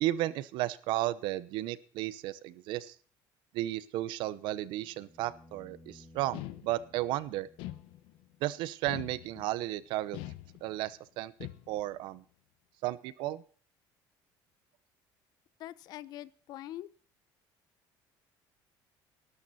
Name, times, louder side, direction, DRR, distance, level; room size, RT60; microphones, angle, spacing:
voice 1, 0.0-2.9 3.5-7.5 8.4-10.2 10.6-11.3 11.7-12.2 12.8-13.4, right 15 dB, 65° right, 17 dB, 0.9 m, -34 dB
sound 1, 4.2-8.3 10.7-10.8, left 1 dB, 15° left, 2.3 m, -58 dB
sound 2, 6.3-7.1 7.6-8.3 8.9-9.6 10.1-10.9 11.4-12.0, left 16 dB, 85° left, 1.1 m, -44 dB
voice 2, 15.6-16.9, left 13 dB, 50° left, 18 dB, 0.8 m, -43 dB
19.0 x 12.5 x 4.2 m, 0.42 s
cardioid pair, 180°, 9 cm